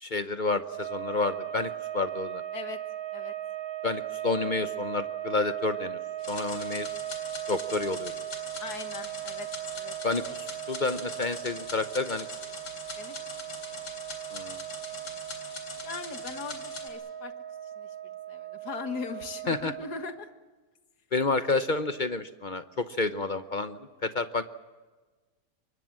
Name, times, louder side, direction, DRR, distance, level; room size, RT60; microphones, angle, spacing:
voice 1, 0.0-2.4 3.8-6.0 6.3-6.9 7.5-8.1 10.0-12.3 14.3-14.6 19.5-19.7 21.1-24.4, left 3 dB, 40° left, 11 dB, 0.7 m, -30 dB
sound 1, 0.6-20.3, right 12 dB, 65° right, 1.5 m, -38 dB
sound 2, 6.2-16.9, left 3 dB, 90° left, 4.2 m, -42 dB
voice 2, 8.6-9.5 9.8-9.9 13.0-13.1 13.5-13.8 15.8-17.3 17.8-17.9 18.3-20.3, left 5 dB, 70° left, 8 dB, 2.1 m, -39 dB
24.5 x 22.0 x 7.5 m, 1.3 s
omnidirectional pair, 1.8 m